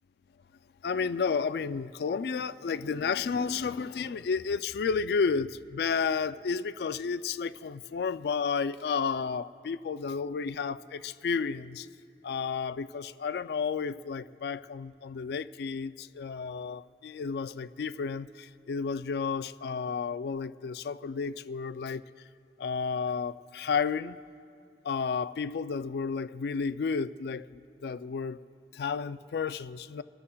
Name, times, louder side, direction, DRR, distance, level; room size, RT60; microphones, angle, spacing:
voice 1, 0.8-11.9 12.2-22.0 22.6-24.2 24.8-28.4 28.7-30.0, left 5 dB, 65° left, 14 dB, 0.3 m, -32 dB
24.5 x 14.0 x 2.3 m, 2.5 s
head